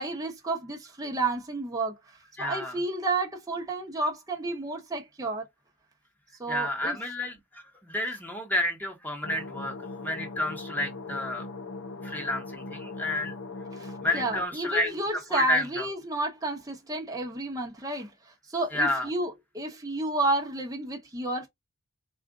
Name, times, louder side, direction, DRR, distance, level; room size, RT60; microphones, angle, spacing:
voice 1, 0.0-2.0 2.4-5.5 6.4-7.0 13.7-21.5, right 2 dB, 15° right, 0.9 m, -31 dB
voice 2, 2.4-2.7 6.5-9.7 10.0-11.5 12.0-13.3 14.0-15.9 18.7-19.1, left 1 dB, 10° left, 1.1 m, -30 dB
sound 1, 9.2-14.5, left 3 dB, 60° left, 0.6 m, -40 dB
4.2 x 2.4 x 3.6 m
head